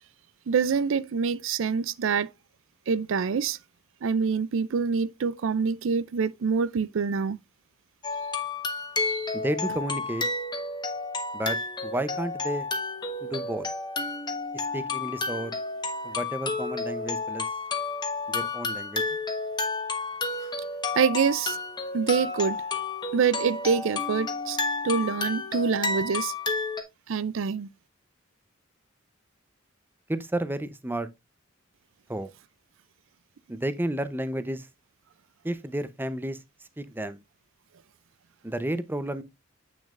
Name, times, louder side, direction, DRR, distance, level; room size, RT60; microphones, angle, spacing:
voice 1, 0.5-2.3 2.9-3.6 4.0-7.4 9.0-9.3 20.9-21.6 21.9-22.6 23.1-24.6 24.8-26.3 27.1-27.7, right 6 dB, 65° right, 0.4 m, -26 dB
sound 1, 8.0-26.8, left 3 dB, 20° left, 1.2 m, -31 dB
voice 2, 9.3-10.2 11.3-11.6 11.8-12.7 13.2-13.7 14.7-15.5 16.0-17.5 18.3-19.0 30.1-31.1 32.1-32.3 33.5-34.7 35.4-36.4 36.8-37.2 38.4-39.2, right 1 dB, 10° right, 0.7 m, -31 dB
8.6 x 6.3 x 2.5 m
head